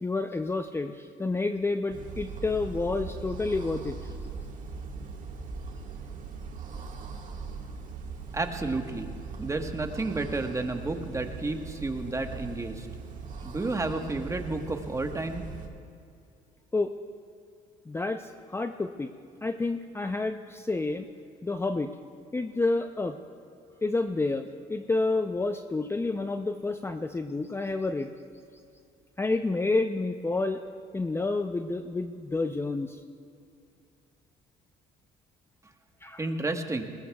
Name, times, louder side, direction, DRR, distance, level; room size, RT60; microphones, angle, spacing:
voice 1, 0.0-4.1 16.7-16.9 17.9-19.1 19.4-21.1 21.4-21.9 22.3-23.2 23.8-28.1 29.2-30.6 30.9-33.0 36.0-36.3, left 3 dB, 15° left, 8 dB, 0.6 m, -29 dB
sound 1, 1.9-15.7, right 5 dB, 50° right, 1.8 m, -40 dB
voice 2, 8.3-9.1 9.4-12.9 13.4-15.4 36.2-36.8, right 2 dB, 20° right, 5 dB, 1.3 m, -31 dB
20.5 x 19.5 x 2.4 m, 2.5 s
supercardioid pair, 75°, 17 cm